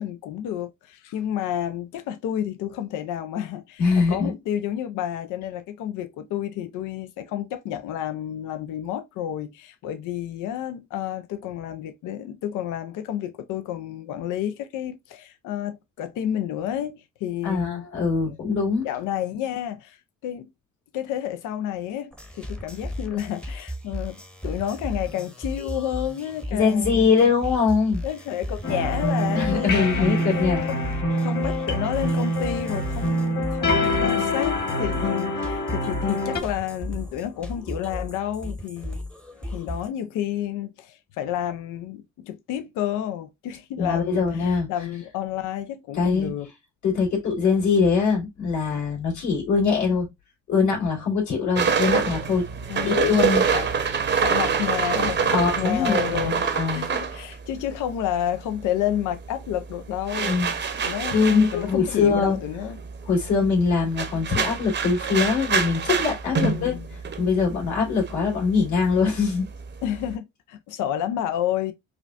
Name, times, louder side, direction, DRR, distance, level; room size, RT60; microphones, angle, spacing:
voice 1, 0.0-18.0 18.8-20.5 20.9-27.1 28.0-30.1 30.7-31.0 31.2-39.0 39.5-46.5 52.7-53.1 53.5-53.7 54.2-60.4 60.8-62.8 66.4-66.9 69.8-71.7, left 10 dB, 90° left, 0.5 m, -30 dB
voice 2, 3.8-4.3 17.4-18.9 26.5-28.0 29.3-30.7 43.8-44.7 45.9-46.3 46.8-50.1 50.5-52.5 52.8-53.4 55.3-56.9 60.2-62.4 63.0-66.8 67.2-69.5, left 5 dB, 70° left, 2.3 m, -22 dB
sound 1, 22.1-39.9, left 1 dB, 5° left, 0.8 m, -35 dB
sound 2, 28.6-36.4, left 1 dB, 35° left, 1.3 m, -25 dB
sound 3, 51.6-58.3 58.5-70.1, right 6 dB, 35° right, 0.7 m, -26 dB
4.9 x 2.2 x 2.3 m
cardioid pair, 90°, 30 cm